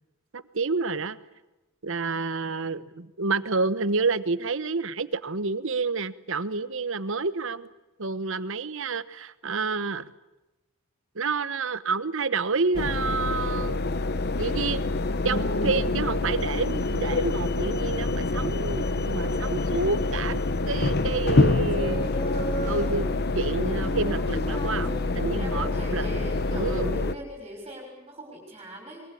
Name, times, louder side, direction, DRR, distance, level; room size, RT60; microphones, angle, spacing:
voice 1, 0.3-1.2 1.8-7.7 8.0-10.1 11.1-13.8 14.4-14.8 15.2-20.4 20.7-22.1 22.7-26.1 26.5-26.9, right 4 dB, 65° right, 15 dB, 1.1 m, -29 dB
sound 1, 12.7-27.1, left 2 dB, 50° left, 1.0 m, -26 dB
Singing, 21.6-23.0 23.5-25.5 26.3-26.9, right 1 dB, 20° left, 5.4 m, -36 dB
voice 2, 23.8-24.3 24.6-25.0 25.4-29.0, right 1 dB, 25° right, -1 dB, 6.3 m, -39 dB
24.5 x 22.0 x 8.6 m, 1.0 s
head